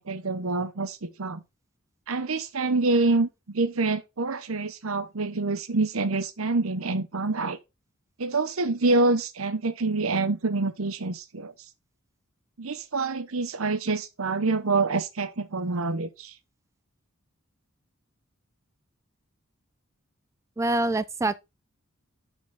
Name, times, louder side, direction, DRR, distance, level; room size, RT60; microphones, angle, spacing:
voice 1, 0.0-1.4 2.1-7.6 8.2-11.5 12.6-16.3, right 3 dB, 85° right, 0.9 m, -26 dB
voice 2, 20.6-21.4, right 2 dB, 15° right, 0.4 m, -25 dB
11.0 x 4.6 x 3.7 m
head